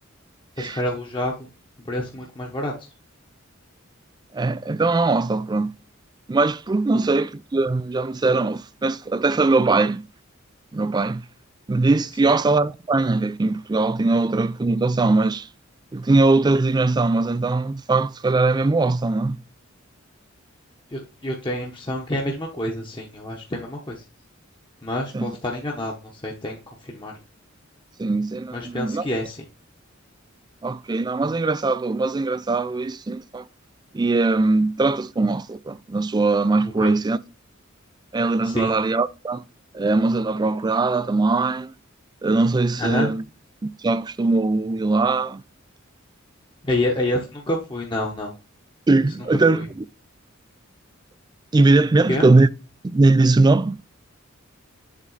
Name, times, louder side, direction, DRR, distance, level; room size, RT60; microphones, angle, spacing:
voice 1, 0.6-1.5 1.8-2.9 12.2-12.3 20.9-24.0 24.8-27.1 28.5-29.5 36.8-36.9 38.4-38.7 42.8-43.1 46.6-48.3 49.5-49.7 52.1-52.3, left 1 dB, 25° left, 1.0 m, -28 dB
voice 2, 4.3-5.7 6.3-10.0 10.7-11.2 11.7-15.5 15.9-19.4 25.1-25.3 28.0-29.1 30.6-33.4 33.9-37.2 38.1-39.4 39.7-41.7 42.2-43.2 43.6-45.4 48.9-49.8 51.5-52.5 52.8-53.9, right 3 dB, 20° right, 0.3 m, -20 dB
7.4 x 3.7 x 4.0 m
head